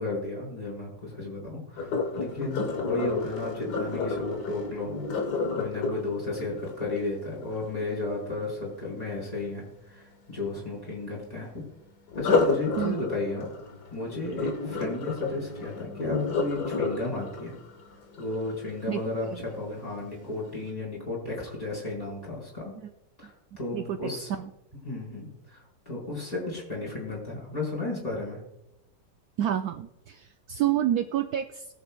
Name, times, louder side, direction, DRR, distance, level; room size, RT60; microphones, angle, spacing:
voice 1, 0.0-4.9 5.5-11.5 12.2-13.5 13.9-17.5 18.2-22.7 23.2-24.3 24.8-25.6 25.9-28.4, left 2 dB, 20° left, -6 dB, 4.4 m, -33 dB
Sink (filling or washing), 1.8-7.7 12.1-19.1 19.7-20.0 20.5-20.6, left 4 dB, 70° left, 1.8 m, -31 dB
voice 2, 23.7-24.5 29.4-31.7, right 11 dB, 70° right, 6 dB, 1.0 m, -29 dB
21.0 x 7.1 x 2.3 m, 0.89 s
omnidirectional pair, 1.9 m